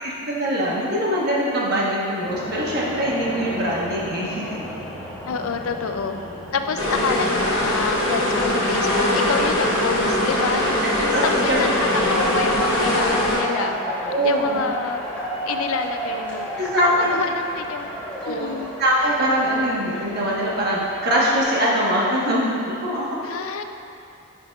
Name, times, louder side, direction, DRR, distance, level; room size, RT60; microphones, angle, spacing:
voice 1, 0.0-4.6 10.5-11.6 14.1-14.6 16.6-17.2 18.2-18.5 18.8-23.3, equal, 45° right, -5 dB, 1.2 m, -23 dB
sound 1, 2.2-21.4, equal, 5° left, 1.1 m, -33 dB
voice 2, 5.3-6.2 6.5-11.8 12.1-15.0 15.5-17.9 18.2-18.7 23.2-23.6, left 5 dB, 75° left, 7 dB, 0.4 m, -28 dB
sound 2, 6.8-13.4, left 1 dB, 60° left, 1.6 m, -21 dB
10.5 x 5.6 x 2.4 m, 2.7 s
head